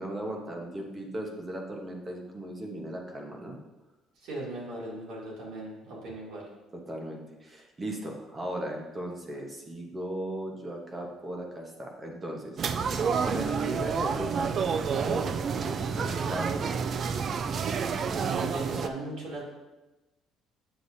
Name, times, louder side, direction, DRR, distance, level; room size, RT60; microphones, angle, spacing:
voice 1, 0.0-3.6 6.7-14.5 15.0-16.7, right 1 dB, 20° right, 1 dB, 1.0 m, -37 dB
voice 2, 4.2-6.5 18.1-19.4, right 2 dB, 65° right, -5 dB, 2.5 m, -38 dB
sound 1, 12.6-18.9, right 6 dB, 35° right, 0.3 m, -29 dB
7.9 x 6.9 x 2.7 m, 1.1 s
cardioid pair, 170°, 0 cm